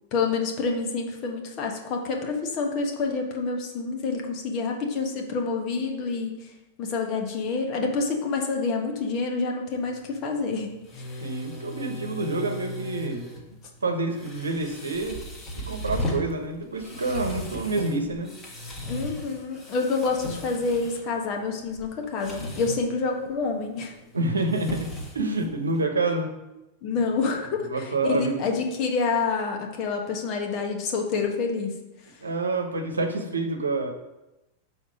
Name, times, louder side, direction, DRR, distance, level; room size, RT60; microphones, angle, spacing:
voice 1, 0.1-6.3 6.8-11.2 18.9-23.9 26.8-31.8, left 4 dB, 40° left, 2 dB, 1.3 m, -28 dB
sound 1, 9.7-25.9, left 1 dB, 20° left, 1.6 m, -37 dB
voice 2, 11.2-13.3 13.8-15.2 15.5-18.3 24.1-26.3 27.7-28.5 32.2-33.9, right 3 dB, 75° right, 4 dB, 0.9 m, -28 dB
6.6 x 4.3 x 5.0 m, 0.97 s
figure-of-eight pair, 90°, 0 cm